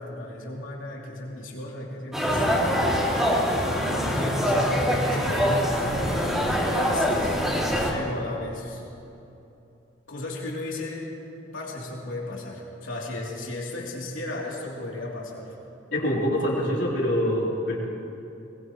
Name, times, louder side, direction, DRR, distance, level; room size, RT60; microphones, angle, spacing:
voice 1, 0.0-3.4 4.0-7.4 7.9-8.8 10.1-11.1 11.5-15.6, left 1 dB, 85° left, -3 dB, 3.2 m, -35 dB
sound 1, 2.1-7.9, equal, 5° right, 2.5 m, -24 dB
voice 2, 15.9-17.8, equal, 70° left, -4 dB, 3.6 m, -25 dB
21.5 x 21.0 x 3.2 m, 2.8 s
head